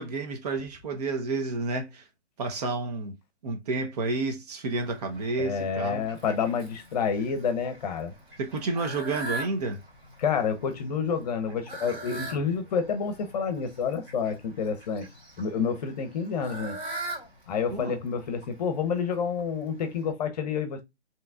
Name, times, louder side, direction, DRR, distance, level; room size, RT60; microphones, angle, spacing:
voice 1, 0.0-2.1 2.4-3.2 3.4-6.1 8.4-9.8 17.7-18.0, right 3 dB, 35° right, 0.9 m, -30 dB
Fowl, 4.7-20.1, right 2 dB, 15° right, 2.6 m, -42 dB
voice 2, 5.4-8.1 10.2-15.1 15.4-16.8 17.5-20.8, left 6 dB, 35° left, 0.9 m, -29 dB
5.6 x 3.1 x 2.4 m
figure-of-eight pair, 135°, 34 cm